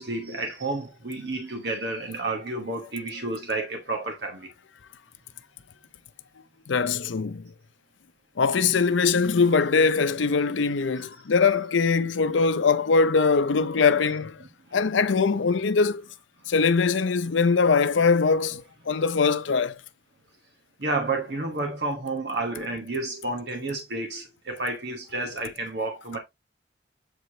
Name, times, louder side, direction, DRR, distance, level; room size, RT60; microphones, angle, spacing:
voice 1, 0.0-4.5 11.2-11.3 14.4-14.8 20.8-26.2, right 2 dB, 60° right, 1.2 m, -31 dB
voice 2, 6.7-7.5 8.4-14.4 14.7-16.1 16.5-19.8, left 5 dB, 85° left, 0.6 m, -22 dB
8.0 x 4.7 x 2.8 m
head